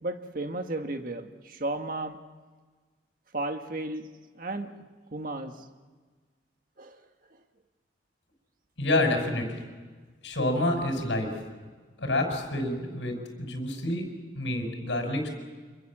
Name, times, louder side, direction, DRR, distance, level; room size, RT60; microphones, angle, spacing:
voice 1, 0.0-2.2 3.3-4.1 4.4-4.8 5.1-5.5 6.8-6.9, right 2 dB, 50° right, 6 dB, 1.5 m, -34 dB
voice 2, 8.8-9.5 10.2-11.3 12.0-14.1 14.3-15.3, left 1 dB, 75° left, 3 dB, 6.0 m, -28 dB
26.5 x 22.5 x 7.5 m, 1.4 s
head